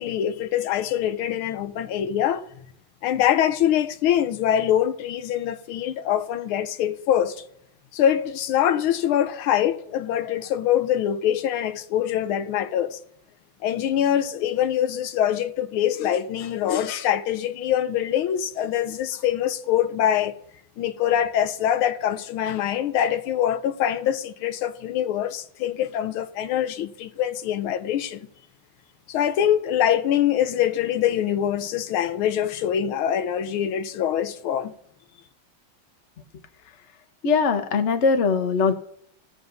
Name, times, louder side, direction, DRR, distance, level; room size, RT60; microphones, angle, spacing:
voice 1, 0.0-2.4 3.0-7.4 7.9-13.0 13.6-20.4 20.8-28.3 29.1-34.7, left 10 dB, 90° left, 1.5 m, -24 dB
voice 2, 37.2-38.7, left 5 dB, 50° left, 0.9 m, -21 dB
18.5 x 7.4 x 2.6 m
omnidirectional pair, 2.3 m